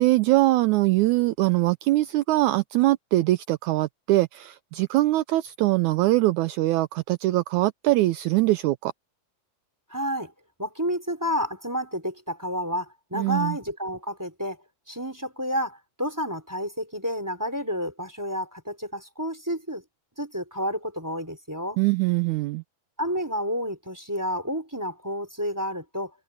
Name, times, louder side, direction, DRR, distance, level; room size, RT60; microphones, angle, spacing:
voice 1, 0.0-8.9 13.1-13.6 21.8-22.6, right 18 dB, 85° right, 1.7 m, -22 dB
voice 2, 9.9-10.3 10.6-14.6 14.9-19.8 20.2-21.8 23.0-26.1, equal, 5° right, 3.4 m, -30 dB
omnidirectional pair, 4.0 m